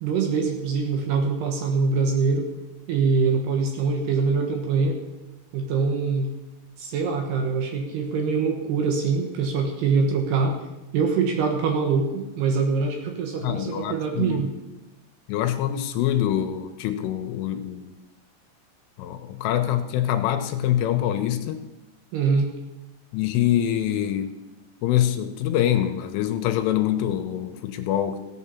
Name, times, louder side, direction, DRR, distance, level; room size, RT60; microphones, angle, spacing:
voice 1, 0.0-2.5 2.9-5.0 5.5-6.3 6.8-10.6 10.9-14.5 22.1-22.5, right 5 dB, 70° right, 3 dB, 2.9 m, -24 dB
voice 2, 13.4-14.4 15.3-17.9 19.0-21.6 23.1-24.3 24.8-28.2, left 11 dB, 85° left, 8 dB, 3.2 m, -25 dB
15.5 x 8.3 x 7.1 m, 1.1 s
omnidirectional pair, 6.0 m